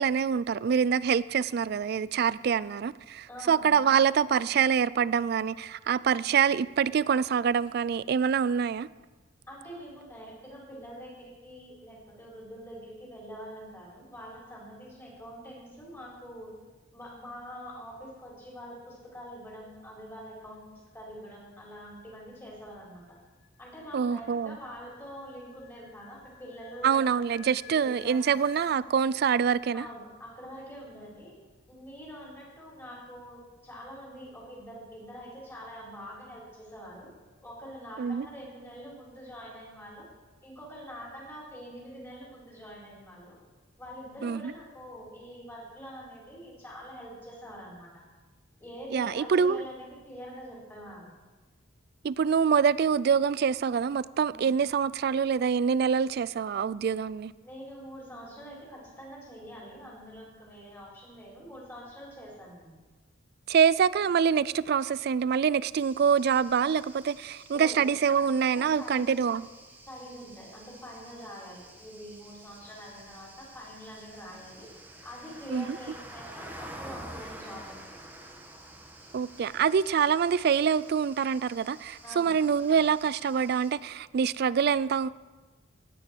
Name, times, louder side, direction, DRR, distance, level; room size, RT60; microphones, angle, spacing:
voice 1, 0.0-8.9 23.9-24.6 26.8-29.9 38.0-38.3 44.2-44.4 48.9-49.6 52.0-57.3 63.5-69.4 75.5-75.7 79.1-85.1, right 7 dB, 50° right, 0.3 m, -25 dB
voice 2, 3.3-3.6 9.5-16.5 16.9-23.2 23.6-27.0 27.3-28.3 29.7-31.3 31.7-37.1 37.4-40.1 40.4-43.4 43.8-48.0 48.6-51.1 54.3-54.5 57.4-62.8 67.5-67.8 68.4-69.2 69.9-74.7 75.0-78.0 82.0-82.4, equal, 15° left, 4.3 m, -45 dB
sound 1, 22.3-28.8, left 9 dB, 75° left, 1.8 m, -55 dB
sound 2, 65.7-83.7, right 1 dB, 10° right, 1.1 m, -49 dB
17.0 x 9.9 x 4.5 m
head